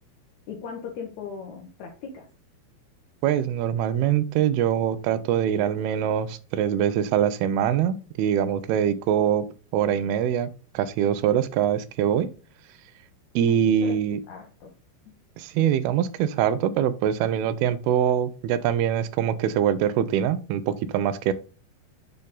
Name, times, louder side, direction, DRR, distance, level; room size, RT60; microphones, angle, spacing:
voice 1, 0.5-2.3 13.5-14.0 14.3-14.7, left 6 dB, 70° left, 1 dB, 1.9 m, -38 dB
voice 2, 3.2-9.5 9.7-10.5 10.7-12.3 13.4-14.2 15.4-21.3, right 9 dB, 80° right, 13 dB, 2.4 m, -23 dB
8.6 x 4.1 x 3.8 m, 0.34 s
omnidirectional pair, 4.7 m